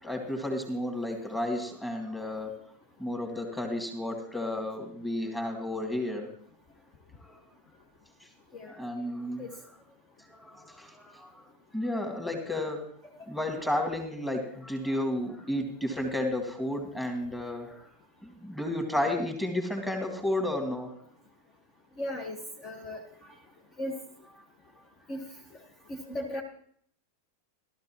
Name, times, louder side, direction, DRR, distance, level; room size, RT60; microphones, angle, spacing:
voice 1, 0.0-2.6 3.0-6.3 7.3-7.4 8.8-9.5 10.3-11.3 11.7-12.8 13.3-17.9 18.2-20.9, left 1 dB, 5° left, 2 dB, 2.6 m, -32 dB
voice 2, 22.0-22.4 22.6-23.0 23.8-23.9 25.1-25.2 26.1-26.4, left 1 dB, 30° left, 0 dB, 1.6 m, -35 dB
15.5 x 13.0 x 3.0 m, 0.63 s
figure-of-eight pair, 90°, 0 cm